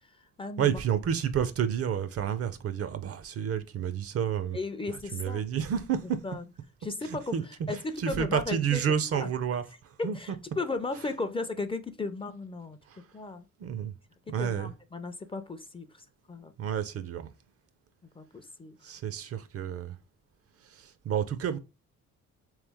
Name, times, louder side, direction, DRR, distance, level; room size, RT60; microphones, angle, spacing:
voice 1, 0.0-0.8 4.5-5.4 6.2-6.4 6.8-7.4 7.7-8.8 9.1-9.3 10.0-12.8 13.1-13.5 14.3-16.5 18.2-18.9, left 3 dB, 20° left, 0.4 m, -35 dB
voice 2, 0.6-4.6 4.9-6.2 7.0-7.4 7.7-10.2 12.9-13.1 13.6-13.9 14.3-14.7 16.6-17.3 18.8-20.0 20.6-21.6, right 8 dB, 50° right, 0.5 m, -30 dB
3.3 x 3.1 x 3.4 m
cardioid pair, 90°, 30 cm